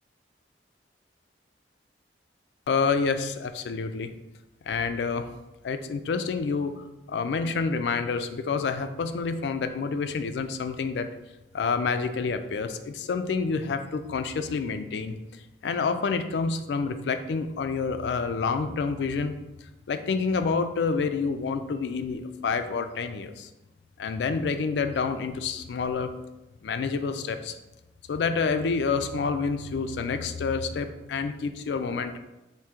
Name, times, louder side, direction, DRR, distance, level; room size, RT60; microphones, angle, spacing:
voice 1, 2.7-4.1 4.7-5.3 5.6-11.1 11.5-15.1 15.6-19.4 19.9-23.5 24.0-26.1 26.6-27.5 28.1-32.2, left 5 dB, 70° left, 9 dB, 0.3 m, -28 dB
3.6 x 2.7 x 4.3 m, 0.97 s
head